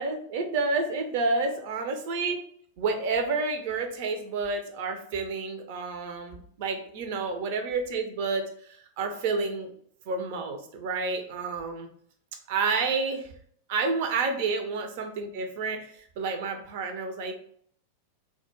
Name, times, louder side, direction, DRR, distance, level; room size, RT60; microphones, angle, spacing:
voice 1, 0.0-2.4 2.8-9.7 10.1-11.9 12.5-13.3 13.7-17.3, right 4 dB, 50° right, 5 dB, 0.4 m, -30 dB
2.2 x 2.0 x 2.9 m, 0.62 s
figure-of-eight pair, 90°, 0 cm